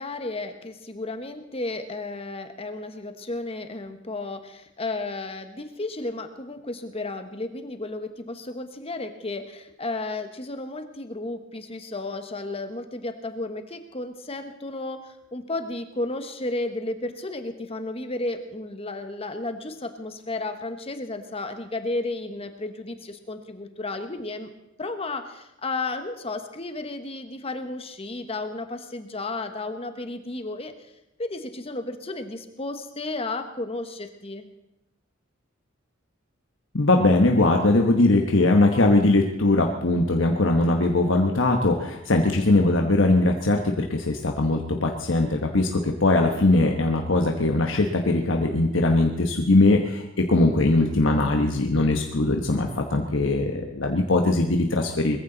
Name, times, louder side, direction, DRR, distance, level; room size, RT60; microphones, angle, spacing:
voice 1, 0.0-24.5 24.8-30.7 31.2-34.4, left 2 dB, 30° left, 8 dB, 1.2 m, -33 dB
voice 2, 36.7-55.2, left 2 dB, 65° left, 3 dB, 1.2 m, -21 dB
21.0 x 14.5 x 4.0 m, 0.86 s
head